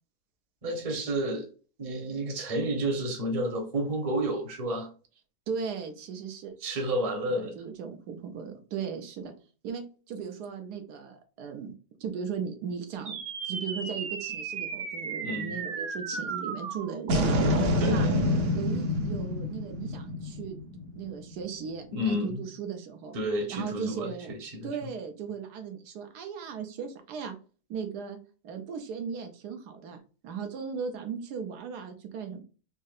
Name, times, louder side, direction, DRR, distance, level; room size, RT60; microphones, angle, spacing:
voice 1, 0.6-1.5 1.8-4.9 6.6-7.6 15.2-15.6 17.8-18.1 21.9-22.4 23.1-24.9, right 1 dB, 30° right, 3 dB, 0.8 m, -31 dB
voice 2, 5.5-6.5 7.4-9.3 9.6-11.7 12.0-13.2 13.4-18.1 18.5-20.6 20.9-23.2 23.5-24.3 24.6-27.4 27.7-28.2 28.4-32.4, right 6 dB, 85° right, 6 dB, 1.3 m, -37 dB
sound 1, 13.1-21.6, equal, 60° right, 0.9 m, -29 dB
4.2 x 2.7 x 2.4 m, 0.36 s
omnidirectional pair, 1.7 m